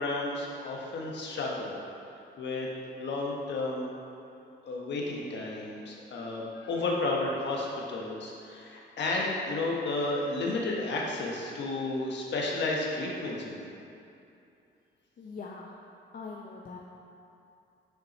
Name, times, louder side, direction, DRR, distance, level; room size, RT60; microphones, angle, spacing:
voice 1, 0.0-1.8 2.4-2.7 2.9-3.9 4.6-13.7, left 2 dB, 65° left, -2 dB, 1.4 m, -32 dB
voice 2, 15.2-15.7 16.1-16.8, left 4 dB, 45° left, -2 dB, 0.7 m, -42 dB
6.6 x 5.5 x 4.3 m, 2.7 s
cardioid pair, 90°, 20 cm